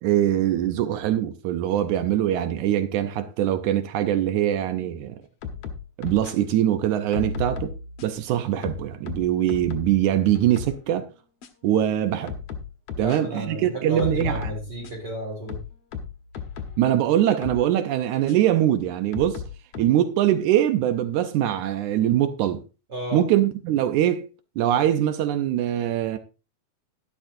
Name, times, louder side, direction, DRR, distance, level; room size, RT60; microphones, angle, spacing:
voice 1, 0.0-5.2 6.0-7.7 8.0-11.1 11.6-12.3 13.0-14.4 16.8-19.4 19.8-22.6 23.1-24.3 24.6-26.2, right 11 dB, 85° right, 2.2 m, -22 dB
sound 1, 5.4-6.3 7.1-8.2 8.6-10.0 10.4-10.8 11.4-11.5 12.3-13.2 14.0-15.1 15.5-16.8 17.4-17.6 18.3-18.4 19.1-19.8, left 4 dB, 65° left, 2.1 m, -34 dB
voice 2, 13.0-15.6 22.9-23.2, right 1 dB, 35° right, 3.7 m, -32 dB
12.0 x 11.5 x 2.7 m
omnidirectional pair, 3.4 m